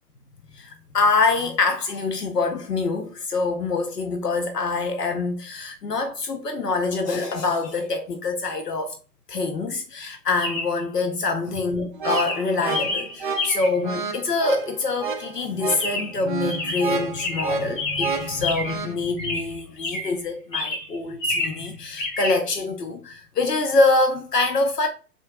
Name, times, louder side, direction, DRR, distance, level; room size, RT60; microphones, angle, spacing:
voice 1, 0.5-9.0 9.3-24.9, left 3 dB, 85° left, 0.6 m, -25 dB
Chirp tweet, 7.6-7.8 10.4-10.8 11.5-11.8 12.1-13.9 15.8-16.2 16.5-18.9 19.2-20.2 20.5-21.7 22.0-22.4, left 2 dB, 55° left, 1.5 m, -29 dB
sound 1, 11.9-18.9, right 4 dB, 35° right, 0.4 m, -30 dB
3.7 x 2.4 x 2.3 m
figure-of-eight pair, 120°, 47 cm